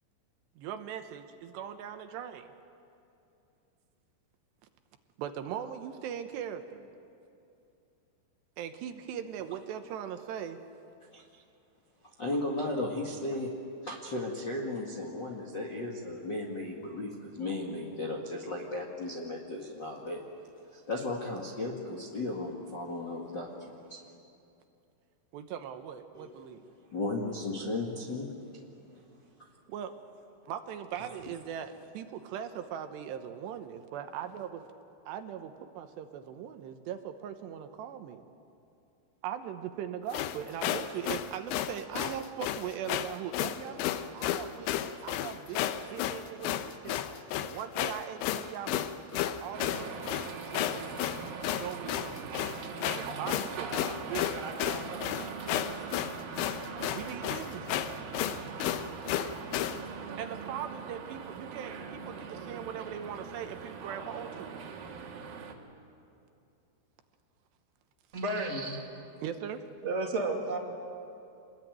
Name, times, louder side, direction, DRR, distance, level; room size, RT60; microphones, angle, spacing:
voice 1, 0.6-2.5 5.2-6.9 8.6-10.6 11.3-11.4 25.3-26.6 29.7-29.9 30.4-34.7 35.1-38.2 39.2-47.0 47.4-51.1 51.4-54.8 56.9-57.9 60.2-64.7 69.2-69.6, right 9 dB, 75° right, 8 dB, 3.0 m, -40 dB
voice 2, 12.2-13.6 13.8-20.2 20.7-24.0 26.1-26.6 26.9-28.3 28.8-29.0 29.4-29.5, left 2 dB, 45° left, -1 dB, 1.4 m, -35 dB
sound 1, 40.1-59.8, left 12 dB, 85° left, 3.2 m, -33 dB
sound 2, 49.5-65.5, right 5 dB, 60° right, 3.2 m, -41 dB
voice 3, 68.1-68.8 69.8-70.6, right 2 dB, 25° right, 0 dB, 1.7 m, -31 dB
27.5 x 21.0 x 9.2 m, 2.7 s
omnidirectional pair, 5.3 m